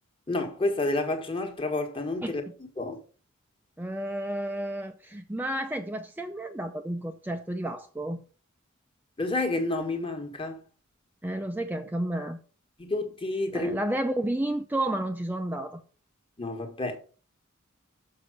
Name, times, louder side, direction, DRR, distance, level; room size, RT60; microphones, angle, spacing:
voice 1, 0.3-2.4 2.8-3.0 9.2-10.6 12.8-13.8 16.4-17.0, left 2 dB, 25° left, 1.4 m, -29 dB
voice 2, 2.2-2.5 3.8-8.2 11.2-12.4 13.5-15.8, right 1 dB, 10° right, 0.5 m, -31 dB
6.8 x 5.5 x 6.3 m
head